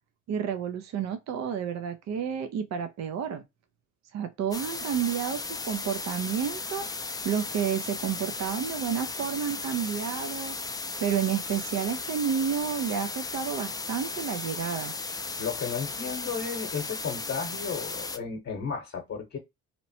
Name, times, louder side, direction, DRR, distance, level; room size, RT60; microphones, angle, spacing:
voice 1, 0.3-3.4 4.1-7.0 7.2-10.6 11.0-14.9, right 8 dB, 60° right, 0.5 m, -30 dB
sound 1, 4.5-18.2, left 3 dB, 15° left, 0.3 m, -36 dB
voice 2, 15.4-19.4, left 6 dB, 50° left, 0.9 m, -33 dB
2.9 x 2.0 x 2.7 m
cardioid pair, 90°, 30 cm